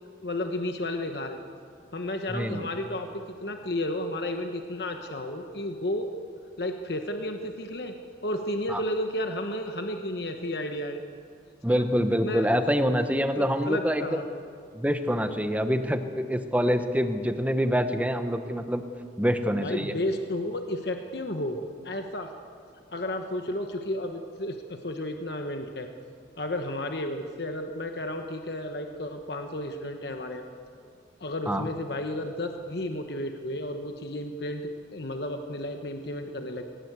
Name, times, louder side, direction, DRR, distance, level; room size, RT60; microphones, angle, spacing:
voice 1, 0.2-1.4 1.9-6.1 6.6-7.9 8.2-11.0 11.7-11.8 12.2-12.5 13.3-14.2 19.6-21.6 21.8-22.3 22.9-25.9 26.4-30.4 31.2-34.6 34.9-36.7, left 1 dB, 65° left, 5 dB, 1.2 m, -32 dB
voice 2, 2.3-2.7 8.7-8.8 11.6-14.2 14.7-18.8 19.2-19.9 31.5-31.7, equal, 10° right, 8 dB, 1.0 m, -26 dB
21.0 x 18.5 x 8.2 m, 2.3 s
head